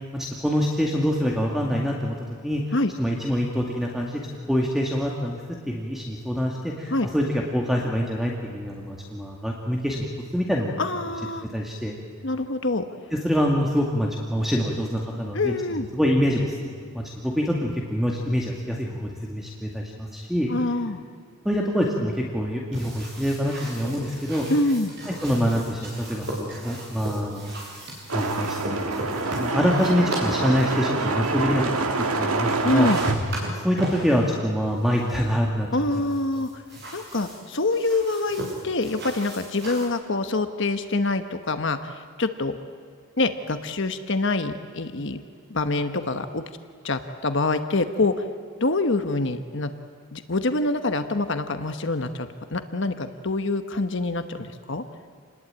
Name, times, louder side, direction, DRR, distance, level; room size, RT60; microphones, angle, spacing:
voice 1, 0.1-2.2 2.4-2.6 3.0-5.4 5.7-10.1 10.3-10.8 11.4-12.0 13.1-15.5 15.9-16.6 16.9-20.5 21.4-24.5 25.1-27.5 28.1-28.9 29.4-31.9 32.2-32.9 33.5-36.0, equal, ahead, -1 dB, 2.0 m, -25 dB
voice 2, 10.8-11.5 12.2-12.8 15.3-15.9 20.5-21.0 24.5-24.9 32.6-33.0 35.7-36.6 36.9-42.6 43.2-45.2 45.5-46.4 46.8-48.1 48.6-49.7 50.1-54.8, left 2 dB, 55° left, 8 dB, 1.2 m, -25 dB
sound 1, 22.7-30.8 32.1-32.3 32.5-34.2 34.8-35.1 35.9-39.9, equal, 50° right, 7.5 m, -35 dB
sound 2, 28.1-33.2, right 3 dB, 80° right, 1.9 m, -26 dB
28.0 x 20.5 x 8.9 m, 2.1 s
head